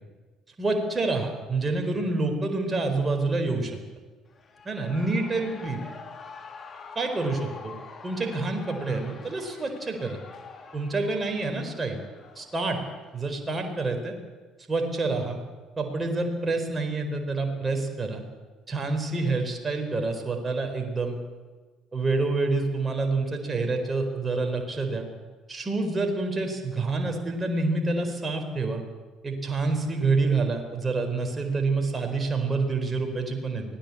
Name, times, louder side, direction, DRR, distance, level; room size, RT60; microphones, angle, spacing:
voice 1, 0.6-3.8 4.6-5.8 6.9-7.8 8.0-10.2 10.7-12.0 12.4-12.8 13.1-14.1 14.7-15.4 15.8-18.2 18.7-21.2 21.9-25.1 25.5-28.8 29.2-33.6, right 3 dB, 25° right, 4 dB, 4.4 m, -27 dB
Shout / Cheering, 4.3-13.2, left 5 dB, 35° left, 3.1 m, -46 dB
24.0 x 17.0 x 8.6 m, 1.3 s
figure-of-eight pair, 55°, 0 cm